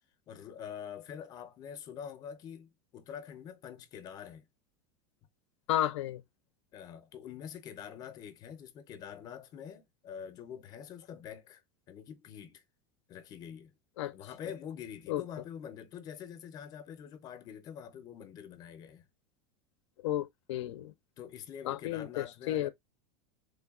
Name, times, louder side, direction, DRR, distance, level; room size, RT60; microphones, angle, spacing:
voice 1, 0.3-4.5 6.7-11.6 11.9-12.6 13.1-13.7 14.1-19.1 21.2-22.7, left 8 dB, 25° left, 0.5 m, -45 dB
voice 2, 5.7-6.2 14.0-14.1 15.1-15.2 20.0-20.9 21.6-22.7, left 13 dB, 85° left, 0.4 m, -32 dB
3.3 x 2.2 x 2.3 m
supercardioid pair, 160°, 14 cm